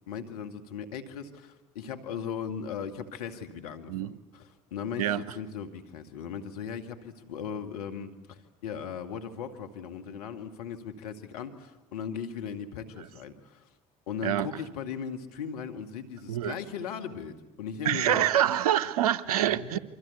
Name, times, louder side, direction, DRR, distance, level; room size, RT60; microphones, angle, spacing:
voice 1, 0.1-13.7 14.1-18.2 19.3-19.8, left 7 dB, 85° left, 2.0 m, -38 dB
voice 2, 17.8-19.8, right 11 dB, 90° right, 0.9 m, -26 dB
28.0 x 24.5 x 8.2 m
hypercardioid pair, 65°, 19 cm